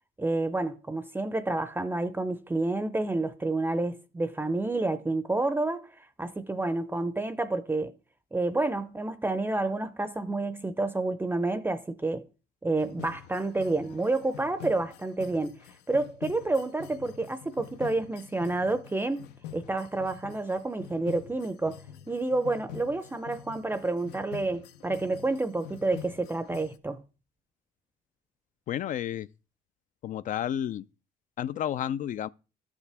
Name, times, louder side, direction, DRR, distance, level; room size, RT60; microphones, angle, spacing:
voice 1, 0.2-7.9 8.3-12.3 12.6-15.5 15.9-19.2 19.5-21.8 22.1-27.0, right 2 dB, 10° right, 0.5 m, -29 dB
sound 1, 12.8-26.8, left 10 dB, 90° left, 0.8 m, -46 dB
voice 2, 28.7-29.3 30.0-30.9 31.4-32.3, left 10 dB, 50° left, 0.4 m, -31 dB
12.0 x 7.3 x 3.4 m
cardioid pair, 110°, 17 cm